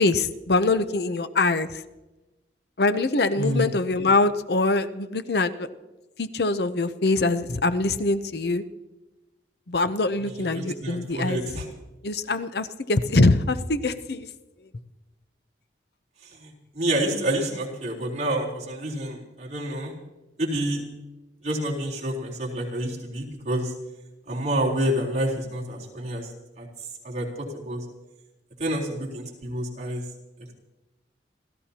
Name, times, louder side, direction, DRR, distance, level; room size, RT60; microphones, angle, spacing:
voice 1, 0.0-1.8 2.8-5.7 6.2-8.6 9.7-11.4 12.0-14.3, left 3 dB, 60° left, 11 dB, 0.7 m, -23 dB
voice 2, 3.4-3.7 10.5-11.7 16.4-16.5 16.7-19.9 20.4-20.8 21.4-23.7 24.3-26.3 26.6-26.7 27.0-27.8 28.6-30.0, right 1 dB, 40° right, -4 dB, 3.8 m, -28 dB
29.5 x 14.0 x 2.9 m, 1.1 s
head